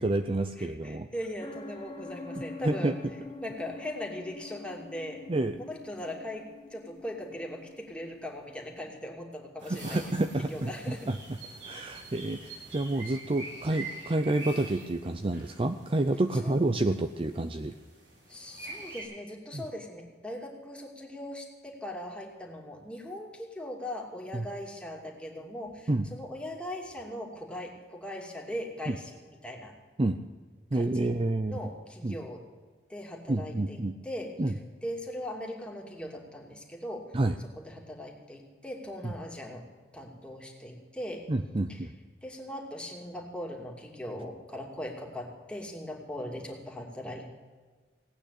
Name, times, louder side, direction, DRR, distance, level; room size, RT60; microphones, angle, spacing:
voice 1, 0.0-1.1 2.3-3.0 5.3-5.6 9.7-11.4 11.6-17.7 19.5-19.6 24.3-24.5 25.9-26.1 28.9-29.0 30.0-30.2 30.7-31.6 32.0-32.2 33.3-33.9 34.4-34.5 37.1-37.3 39.0-39.1 41.3-41.9, right 2 dB, 30° right, 9 dB, 0.6 m, -29 dB
voice 2, 0.6-3.0 3.4-5.2 5.6-10.0 10.5-11.1 16.4-16.6 18.3-29.7 30.7-31.1 31.5-32.4 32.9-34.4 34.8-37.1 37.5-39.7 39.9-41.3 41.7-41.8 42.2-47.4, left 1 dB, 5° left, 0 dB, 2.6 m, -40 dB
sound 1, 1.4-8.9, left 3 dB, 25° left, 1.2 m, -46 dB
sound 2, 9.6-19.0, right 2 dB, 80° right, 6.9 m, -45 dB
17.5 x 9.1 x 8.3 m, 1.5 s
head